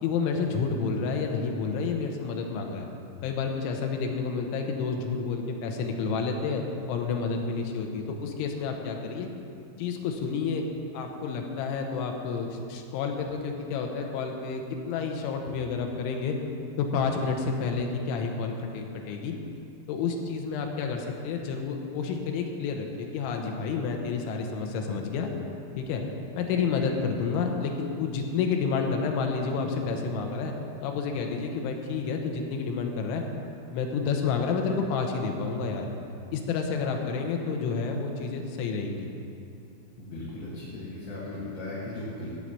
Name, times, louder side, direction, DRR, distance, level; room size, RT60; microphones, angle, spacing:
voice 1, 0.0-2.9 3.2-9.3 9.8-10.6 10.9-16.4 16.8-19.4 19.9-25.3 25.7-26.0 26.3-30.5 30.8-33.2 33.7-35.9 36.3-39.1, left 5 dB, 80° left, 2 dB, 3.3 m, -30 dB
voice 2, 40.0-42.3, left 2 dB, 60° left, -8 dB, 3.4 m, -37 dB
14.5 x 4.9 x 8.8 m, 2.7 s
omnidirectional pair, 5.7 m